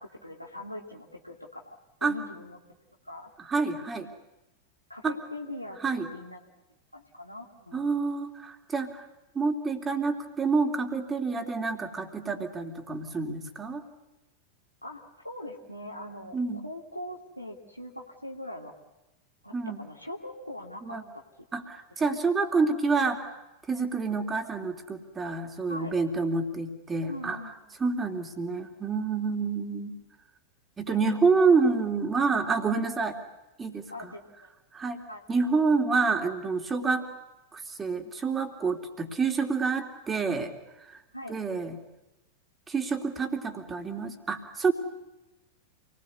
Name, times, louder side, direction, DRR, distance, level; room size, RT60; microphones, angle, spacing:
voice 1, 0.0-2.6 3.0-3.3 4.9-6.4 6.9-7.9 14.8-18.7 19.4-21.2 22.0-22.2 25.7-25.9 27.1-27.6 30.9-31.0 33.9-34.5 35.1-35.2 41.1-41.3, left 1 dB, 90° left, 1 dB, 2.7 m, -42 dB
voice 2, 3.4-4.1 5.0-5.1 5.8-6.1 7.7-9.1 9.3-13.8 16.3-16.6 19.5-19.8 20.8-21.0 21.5-23.4 23.7-27.4 27.8-30.0 30.8-33.2 33.6-34.1 34.7-35.0 35.3-37.0 37.5-40.5 40.8-41.0 41.3-41.8 42.7-44.7, right 4 dB, 15° right, 5 dB, 3.3 m, -28 dB
28.0 x 20.5 x 9.7 m, 0.98 s
figure-of-eight pair, 90°, 0 cm